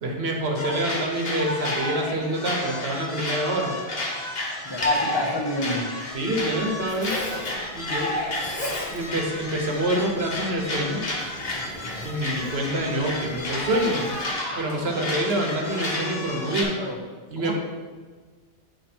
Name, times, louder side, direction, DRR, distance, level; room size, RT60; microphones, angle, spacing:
voice 1, 0.0-3.7 6.1-7.1 7.7-8.1 8.9-11.0 12.0-14.2 14.5-16.7 17.3-17.5, right 1 dB, 75° right, 0 dB, 1.3 m, -26 dB
sound 1, 0.6-16.6, left 1 dB, 65° left, 1.3 m, -31 dB
voice 2, 4.6-5.9 16.6-17.0 17.4-17.5, left 1 dB, 25° left, 0 dB, 0.9 m, -29 dB
Zipper (clothing), 6.1-14.3, left 1 dB, 45° left, 1.4 m, -39 dB
8.9 x 3.1 x 4.3 m, 1.4 s
omnidirectional pair, 1.1 m